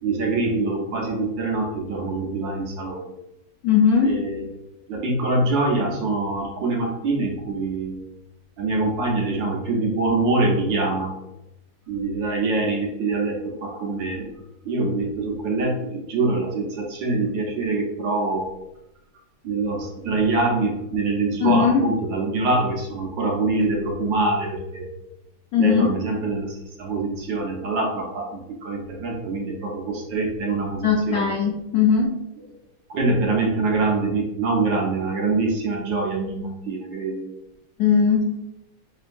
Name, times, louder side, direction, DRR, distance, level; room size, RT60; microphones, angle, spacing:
voice 1, 0.0-3.1 4.0-4.5 4.9-8.0 8.6-11.1 11.9-14.3 14.6-18.5 19.4-24.9 25.6-31.3 32.9-37.3, right 3 dB, 65° right, -2 dB, 1.4 m, -24 dB
voice 2, 3.6-4.1 21.4-21.8 25.5-25.9 30.8-32.1 37.8-38.3, left 6 dB, 90° left, -2 dB, 0.8 m, -19 dB
5.5 x 2.7 x 2.5 m, 0.92 s
omnidirectional pair, 2.4 m